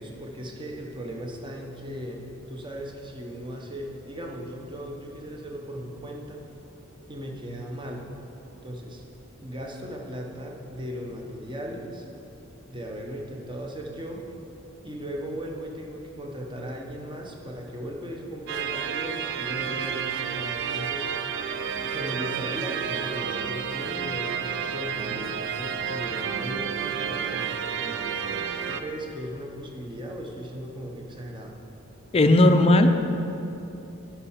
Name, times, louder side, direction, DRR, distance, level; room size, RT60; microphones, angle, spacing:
voice 1, 0.0-2.2 2.5-6.5 7.1-8.1 8.6-9.0 9.4-12.1 12.7-14.2 14.8-21.1 21.9-28.1 28.7-31.5, equal, 25° right, 0 dB, 1.0 m, -37 dB
sound 1, 18.5-28.8, right 7 dB, 60° right, 0.4 m, -30 dB
voice 2, 32.1-32.9, left 1 dB, 30° left, 6 dB, 0.5 m, -16 dB
11.0 x 5.6 x 5.8 m, 2.9 s
head